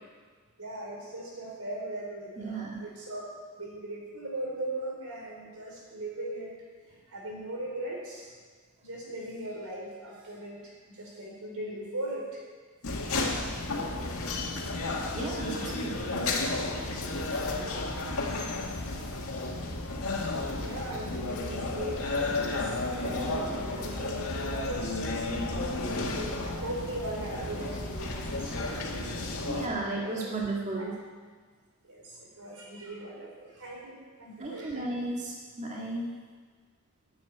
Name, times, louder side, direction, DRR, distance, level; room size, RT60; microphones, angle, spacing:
voice 1, 0.6-3.3 3.6-6.5 7.1-8.3 8.8-12.4 20.4-25.0 26.0-28.8 29.1-30.3 30.8-30.9 31.8-34.9, right 1 dB, 90° right, -2 dB, 4.5 m, -39 dB
voice 2, 2.4-2.8 15.1-16.2 29.5-31.0 34.4-36.1, right 2 dB, 35° right, -3 dB, 1.8 m, -34 dB
sound 1, 12.8-29.7, left 2 dB, 75° left, 2.0 m, -32 dB
11.5 x 8.7 x 9.3 m, 1.5 s
head